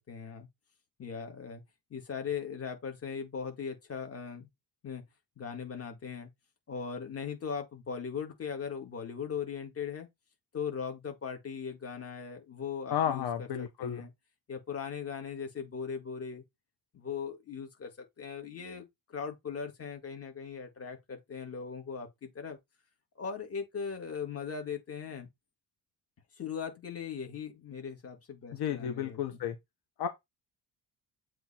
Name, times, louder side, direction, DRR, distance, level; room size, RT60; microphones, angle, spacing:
voice 1, 0.1-0.5 1.0-1.6 1.9-4.5 4.8-5.0 5.4-6.3 6.7-10.1 10.5-14.1 14.5-16.4 16.9-17.9 18.2-22.6 23.2-25.3 26.4-29.4, left 6 dB, 35° left, 2.1 m, -39 dB
voice 2, 12.9-14.0 28.5-29.6 30.0-30.1, left 9 dB, 75° left, 1.1 m, -32 dB
7.7 x 3.3 x 4.3 m
cardioid pair, 155°, 38 cm